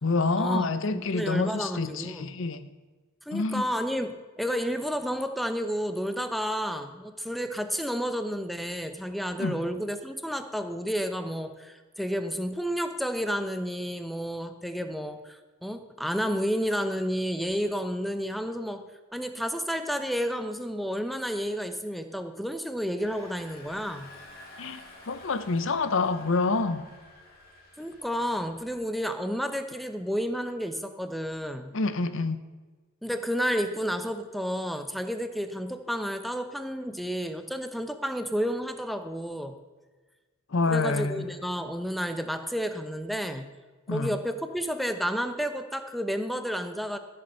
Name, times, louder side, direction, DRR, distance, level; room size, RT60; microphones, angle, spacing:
voice 1, 0.0-2.7 3.3-3.7 9.4-9.6 24.6-26.9 31.7-32.4 40.5-41.3 43.9-44.2, left 3 dB, 65° left, 0.7 m, -27 dB
voice 2, 0.9-2.4 3.3-18.8 19.1-24.1 27.8-31.7 33.0-39.6 40.7-43.5 43.9-47.0, equal, ahead, 0.7 m, -31 dB
Engine, 23.0-28.8, left 2 dB, 45° left, 2.1 m, -51 dB
14.0 x 6.9 x 5.6 m
head